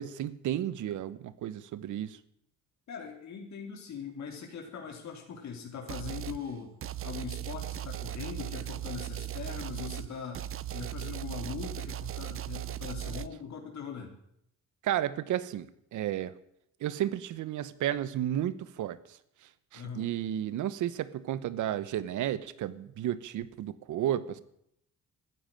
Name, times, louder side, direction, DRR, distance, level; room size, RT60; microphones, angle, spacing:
voice 1, 0.0-2.2 14.8-16.3 16.8-19.0 19.7-24.4, right 11 dB, 80° right, 16 dB, 1.1 m, -32 dB
voice 2, 2.9-6.7 7.0-14.1 19.7-20.1, left 6 dB, 65° left, 1 dB, 3.3 m, -41 dB
sound 1, 5.9-6.4 6.8-13.3, right 12 dB, 45° right, 0.6 m, -37 dB
14.0 x 10.0 x 9.2 m, 0.74 s
cardioid pair, 90°, 30 cm